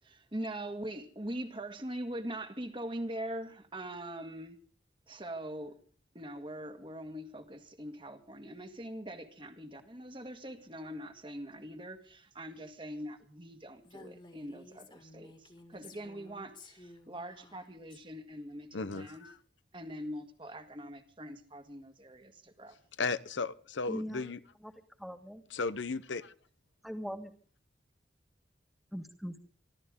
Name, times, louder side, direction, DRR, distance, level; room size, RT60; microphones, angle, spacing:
voice 1, 0.0-4.6 5.1-5.8 6.1-19.3 19.7-22.8, right 1 dB, 25° right, 7 dB, 1.7 m, -42 dB
Female speech woman speaking, 13.9-18.0, left 2 dB, 25° left, 2.0 m, -54 dB
voice 2, 18.7-19.3 23.0-24.4 25.5-26.3, left 4 dB, 85° left, 14 dB, 0.8 m, -35 dB
voice 3, 23.9-24.3 24.6-24.7 25.0-25.4 26.8-27.3 28.9-29.4, equal, ahead, 7 dB, 1.6 m, -40 dB
25.0 x 13.5 x 3.7 m, 0.43 s
head